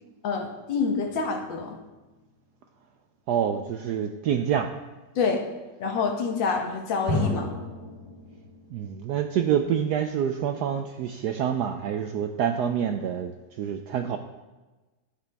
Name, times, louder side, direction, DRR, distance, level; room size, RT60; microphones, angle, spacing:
voice 1, 0.2-1.8 5.2-5.5 5.8-7.5, left 5 dB, 65° left, 3 dB, 1.7 m, -27 dB
sound 1, 1.0-2.4 7.1-8.9, left 1 dB, 25° right, 2.7 m, -33 dB
voice 2, 3.3-4.7 8.7-14.2, right 8 dB, 90° right, 7 dB, 0.9 m, -27 dB
11.5 x 9.7 x 3.4 m, 1.2 s
omnidirectional pair, 2.3 m